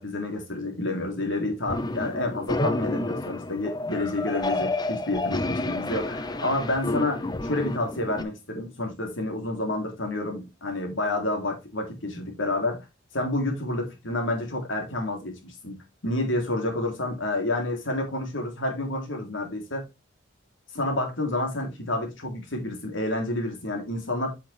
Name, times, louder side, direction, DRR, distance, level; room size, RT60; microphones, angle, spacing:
voice 1, 0.0-12.8 13.1-19.9 20.7-24.4, left 2 dB, 80° left, 3.3 m, -29 dB
sound 1, 1.7-8.2, left 2 dB, 20° left, 0.7 m, -30 dB
8.4 x 5.8 x 3.4 m
head